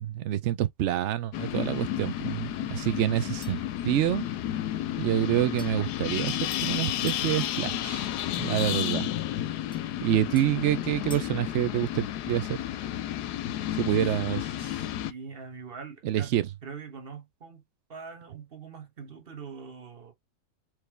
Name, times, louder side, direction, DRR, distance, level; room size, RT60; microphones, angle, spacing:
voice 1, 0.0-4.2 5.0-9.1 10.0-12.6 13.7-14.6 16.0-16.4, right 12 dB, 75° right, 0.6 m, -27 dB
sound 1, 1.3-15.1, left 12 dB, 80° left, 1.2 m, -32 dB
sound 2, 3.4-3.8 5.6-7.3 9.7-11.4, left 1 dB, 5° left, 0.4 m, -51 dB
voice 2, 9.9-10.2 13.8-14.1 14.6-17.6 17.9-20.1, right 5 dB, 35° right, 1.4 m, -44 dB
4.7 x 3.2 x 3.2 m
omnidirectional pair, 1.7 m